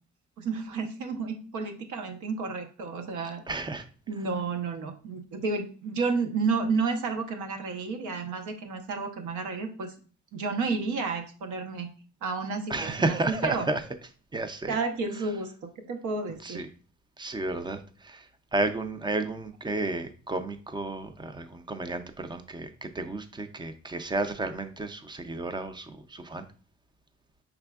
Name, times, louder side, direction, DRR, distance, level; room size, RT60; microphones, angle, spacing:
voice 1, 0.4-3.4 4.1-9.9 10.3-11.9 12.2-13.7 14.7-16.6, right 4 dB, 80° right, 5 dB, 0.8 m, -31 dB
voice 2, 3.5-3.9 12.7-13.8 14.3-14.7 16.4-16.7 17.2-26.5, right 2 dB, 15° right, 10 dB, 0.4 m, -32 dB
4.9 x 3.4 x 2.3 m, 0.39 s
cardioid pair, 90°, 30 cm